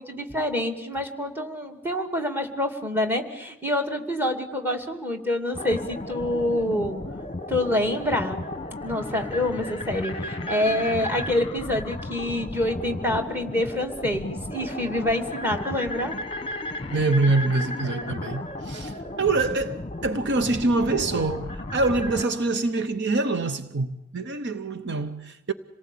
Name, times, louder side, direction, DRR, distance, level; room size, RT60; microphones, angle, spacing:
voice 1, 0.0-7.0 7.5-8.4 8.8-16.2, left 1 dB, 10° right, 2.5 m, -27 dB
sound 1, 5.5-22.2, left 1 dB, 25° left, 1.2 m, -34 dB
voice 2, 16.9-25.5, right 3 dB, 55° right, 0.9 m, -25 dB
27.5 x 19.0 x 8.6 m
head